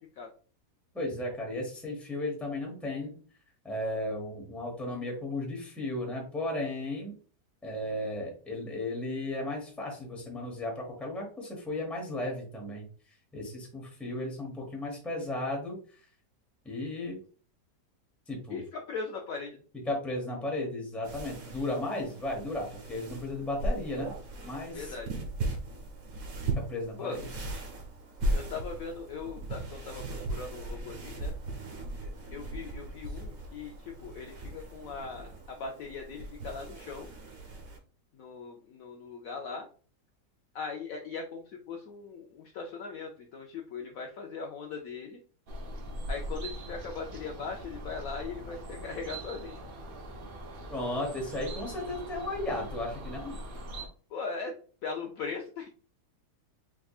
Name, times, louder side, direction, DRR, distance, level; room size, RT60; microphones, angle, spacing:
voice 1, 0.9-3.1 3.6-7.1 7.6-12.9 13.3-15.8 16.6-17.2 18.3-18.6 19.9-24.1 24.4-24.9 26.7-27.2 50.7-53.4, left 1 dB, ahead, -1 dB, 0.8 m, -35 dB
voice 2, 18.5-19.6 24.7-25.1 27.0-27.2 28.3-31.3 32.3-37.1 38.1-39.7 40.5-45.2 46.1-49.6 54.1-54.6 54.8-55.7, left 5 dB, 70° left, 2 dB, 0.8 m, -39 dB
sound 1, 21.0-37.8, right 1 dB, 60° right, 1.3 m, -38 dB
sound 2, 45.5-53.9, right 1 dB, 80° right, 0.5 m, -41 dB
3.6 x 3.5 x 2.3 m, 0.41 s
omnidirectional pair, 1.8 m